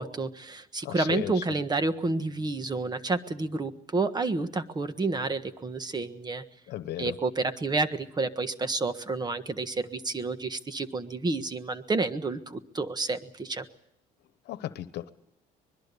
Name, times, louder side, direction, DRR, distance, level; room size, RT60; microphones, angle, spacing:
voice 1, 0.0-6.4 7.0-13.6, right 3 dB, 25° right, 11 dB, 1.4 m, -30 dB
voice 2, 0.8-1.3 6.7-7.1 14.5-15.1, left 13 dB, 75° left, 13 dB, 1.1 m, -35 dB
24.0 x 21.5 x 7.0 m, 0.76 s
cardioid pair, 110°, 17 cm